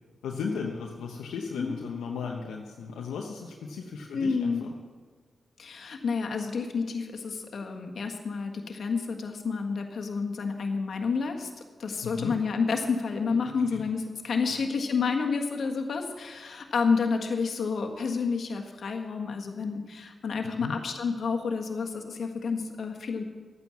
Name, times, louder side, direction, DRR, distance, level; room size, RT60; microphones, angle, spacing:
voice 1, 0.2-4.7 12.0-12.4 13.6-13.8 14.5-14.6 20.4-20.7, left 5 dB, 85° left, 0 dB, 0.9 m, -36 dB
voice 2, 4.1-4.6 5.6-11.5 11.8-23.2, left 5 dB, 70° left, 4 dB, 1.6 m, -29 dB
12.5 x 9.3 x 7.1 m, 1.5 s
supercardioid pair, 40°, 0 cm